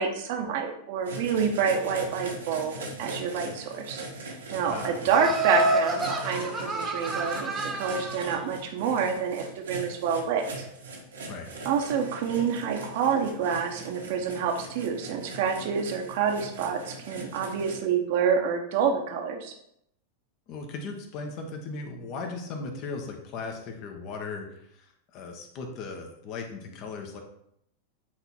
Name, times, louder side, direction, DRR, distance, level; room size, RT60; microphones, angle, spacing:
voice 1, 0.0-2.7 3.0-10.5 11.6-19.5, right 6 dB, 50° right, 3 dB, 1.3 m, -28 dB
sound 1, 1.0-17.8, right 2 dB, 70° right, 1.7 m, -40 dB
voice 2, 4.6-5.1 11.3-11.5 20.5-27.2, left 4 dB, 40° left, 4 dB, 1.5 m, -37 dB
Laughter, 5.1-8.3, right 1 dB, 15° right, 1.4 m, -28 dB
9.5 x 4.1 x 4.6 m, 0.74 s
figure-of-eight pair, 90°, 0 cm